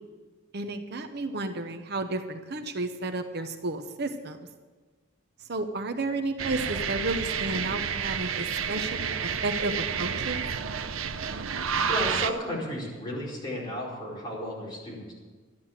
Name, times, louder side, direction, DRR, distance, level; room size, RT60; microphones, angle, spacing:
voice 1, 0.5-4.4 5.5-10.4, right 2 dB, 55° right, 7 dB, 0.9 m, -32 dB
sound 1, 6.4-12.3, right 7 dB, 85° right, 0.7 m, -30 dB
voice 2, 11.9-15.1, equal, 20° left, -5 dB, 4.8 m, -33 dB
13.0 x 10.5 x 7.4 m, 1.4 s
head